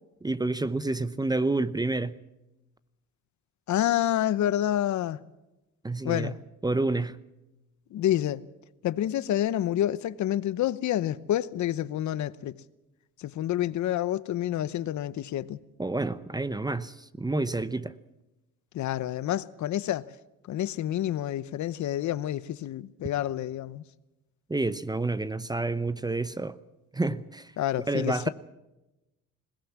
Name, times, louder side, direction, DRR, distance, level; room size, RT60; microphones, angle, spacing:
voice 1, 0.2-2.2 5.8-6.3 6.6-7.2 15.8-17.9 24.5-26.6 26.9-27.5 27.9-28.3, right 2 dB, 15° right, 0.8 m, -29 dB
voice 2, 3.7-5.2 6.0-6.4 7.9-8.4 8.8-12.6 13.2-15.6 18.7-20.1 20.5-23.8 27.6-28.3, left 12 dB, 70° left, 0.9 m, -28 dB
21.0 x 17.5 x 7.3 m
cardioid pair, 90°, 30 cm